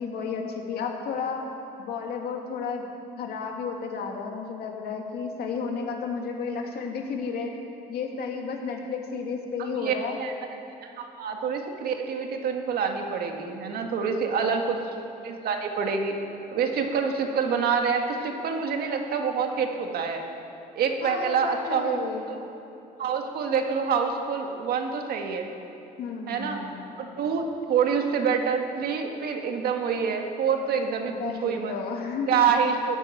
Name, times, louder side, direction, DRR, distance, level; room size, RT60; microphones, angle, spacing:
voice 1, 0.0-1.4 1.8-2.9 3.2-7.5 7.9-10.2 13.8-14.6 21.0-22.4 26.0-26.9 31.1-32.4, left 5 dB, 70° left, 2 dB, 2.3 m, -32 dB
voice 2, 9.8-10.3 10.8-14.8 15.2-16.2 16.5-20.2 20.7-22.0 22.3-22.4 23.0-25.5 26.3-26.6 27.0-31.8 32.3-33.0, right 6 dB, 65° right, 4 dB, 1.8 m, -26 dB
15.5 x 9.7 x 8.9 m, 2.8 s
cardioid pair, 110°, 17 cm